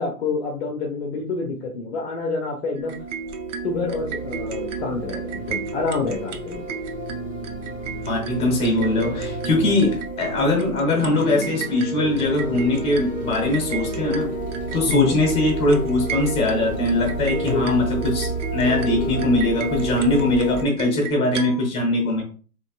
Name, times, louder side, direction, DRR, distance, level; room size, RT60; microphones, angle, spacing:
voice 1, 0.0-3.0 3.6-6.6 14.9-15.2 17.4-17.9, left 4 dB, 45° left, 1 dB, 0.8 m, -28 dB
sound 1, 2.8-20.6, right 1 dB, 20° right, 2.0 m, -31 dB
sound 2, 2.8-21.7, right 6 dB, 50° right, 0.7 m, -33 dB
voice 2, 8.1-14.3 14.7-22.2, left 2 dB, 10° left, 0 dB, 1.4 m, -21 dB
4.2 x 3.1 x 2.4 m, 0.39 s
hypercardioid pair, 135°, 47 cm